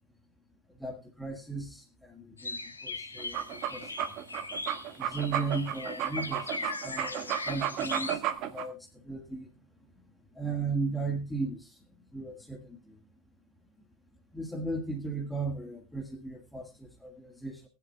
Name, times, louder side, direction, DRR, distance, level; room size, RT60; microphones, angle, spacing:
voice 1, 0.7-4.1 5.0-9.5 10.3-11.8 12.1-13.0 14.3-17.7, right 3 dB, 5° left, 3 dB, 1.8 m, -36 dB
sound 1, 2.4-8.2, left 3 dB, 80° left, 1.8 m, -39 dB
sound 2, 3.2-8.7, right 10 dB, 40° right, 1.3 m, -33 dB
19.0 x 10.5 x 2.4 m, 0.26 s
figure-of-eight pair, 90°, 0 cm